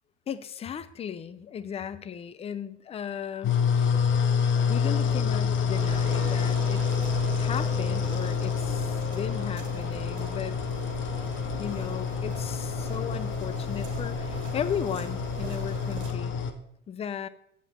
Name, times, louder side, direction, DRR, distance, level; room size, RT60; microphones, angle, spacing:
voice 1, 0.3-3.9 4.7-6.9 7.3-10.6 11.6-16.3 16.9-17.3, left 8 dB, 15° left, 12 dB, 0.5 m, -36 dB
sound 1, 3.4-16.5, left 6 dB, 35° left, 0.9 m, -28 dB
sound 2, 5.7-16.1, right 4 dB, 65° right, 1.8 m, -40 dB
8.2 x 7.1 x 4.2 m, 0.72 s
hypercardioid pair, 85°, 36 cm